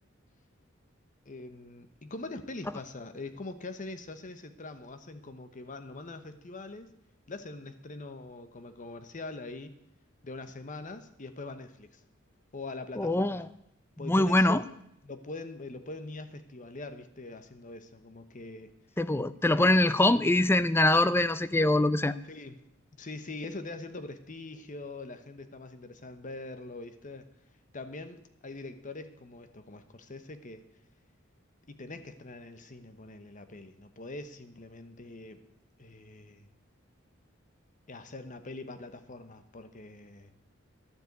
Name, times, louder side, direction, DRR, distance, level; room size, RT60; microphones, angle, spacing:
voice 1, 1.2-6.9 7.3-9.8 10.2-12.0 12.5-13.5 14.0-14.7 15.0-18.7 19.3-19.6 22.2-22.6 23.0-27.3 27.7-30.6 31.7-35.4 35.8-36.5 37.9-40.3, left 2 dB, 40° left, 10 dB, 1.0 m, -43 dB
voice 2, 13.0-13.4 14.0-14.6 19.0-22.1, left 1 dB, 10° left, 14 dB, 0.5 m, -23 dB
12.0 x 7.6 x 8.1 m, 0.77 s
head